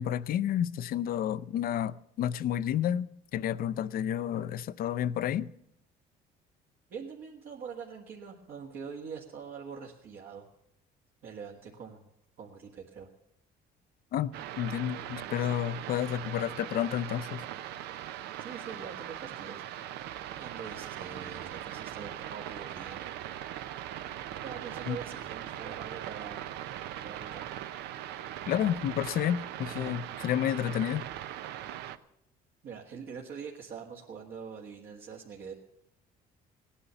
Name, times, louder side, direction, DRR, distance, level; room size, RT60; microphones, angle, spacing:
voice 1, 0.0-5.5 14.1-17.4 24.9-25.0 28.5-31.0, left 10 dB, 60° left, 0.5 m, -30 dB
voice 2, 6.9-10.5 11.2-12.1 12.4-13.1 18.4-19.6 20.4-23.1 24.4-26.5 26.9-27.5 32.6-35.5, right 6 dB, 65° right, 1.8 m, -44 dB
sound 1, 14.3-32.0, right 12 dB, 85° right, 0.7 m, -40 dB
17.0 x 10.0 x 6.9 m
cardioid pair, 110°, 17 cm